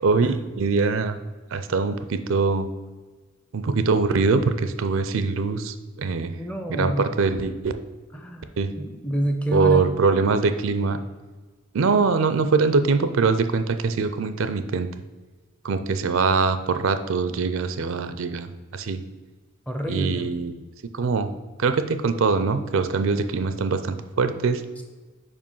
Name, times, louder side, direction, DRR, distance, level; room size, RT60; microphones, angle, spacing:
voice 1, 0.0-1.2 1.5-2.7 3.5-6.3 6.7-7.7 8.6-8.7 9.5-11.0 11.7-14.9 15.6-19.0 19.9-20.5 20.9-21.3 21.6-24.6, right 4 dB, 65° right, 10 dB, 0.4 m, -23 dB
voice 2, 6.3-7.1 8.1-10.0 19.7-20.3 24.8-24.9, right 1 dB, 5° left, 4 dB, 0.5 m, -28 dB
5.1 x 4.9 x 5.5 m, 1.3 s
head